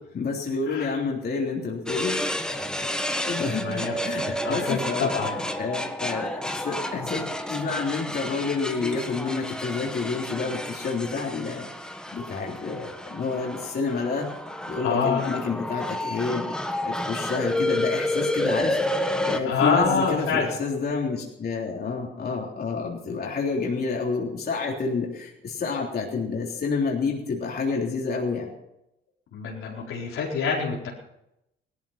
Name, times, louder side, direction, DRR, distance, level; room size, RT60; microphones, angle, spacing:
voice 1, 0.1-2.3 3.3-5.1 5.6-14.3 14.7-28.5, left 4 dB, 50° left, -2 dB, 3.5 m, -29 dB
sound 1, 1.9-19.4, left 1 dB, 5° left, 1.5 m, -30 dB
voice 2, 3.6-4.0 4.4-5.4 14.8-15.2 19.4-20.5 29.3-30.9, left 5 dB, 75° left, -2 dB, 4.5 m, -26 dB
17.5 x 13.0 x 5.9 m, 0.84 s
cardioid pair, 85°, 21 cm